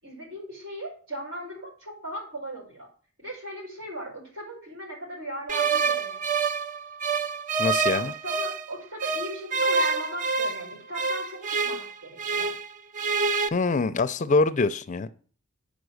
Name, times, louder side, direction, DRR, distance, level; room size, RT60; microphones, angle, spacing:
voice 1, 0.0-2.9 3.2-6.3 7.9-12.5, right 1 dB, 65° right, -2 dB, 4.7 m, -38 dB
sound 1, 5.5-8.7 9.0-12.7 12.9-13.5, right 4 dB, 35° right, 0.4 m, -27 dB
voice 2, 7.6-8.1 13.5-15.1, left 3 dB, 35° left, 12 dB, 0.4 m, -24 dB
8.0 x 5.2 x 6.4 m, 0.43 s
head